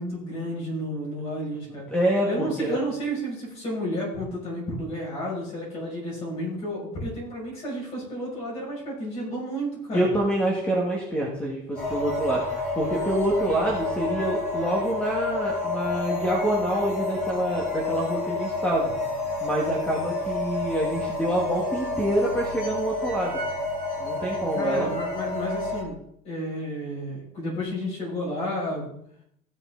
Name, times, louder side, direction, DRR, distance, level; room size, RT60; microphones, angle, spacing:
voice 1, 0.0-1.9 2.3-10.1 24.5-26.0 26.2-29.0, equal, 40° left, -3 dB, 5.9 m, -31 dB
voice 2, 1.7-2.8 9.9-19.0 19.4-23.4 24.0-24.9, right 1 dB, 5° left, -2 dB, 1.6 m, -27 dB
sound 1, 11.7-25.8, left 2 dB, 55° left, 5.1 m, -29 dB
15.0 x 8.9 x 3.8 m, 0.70 s
cardioid pair, 170°, 16 cm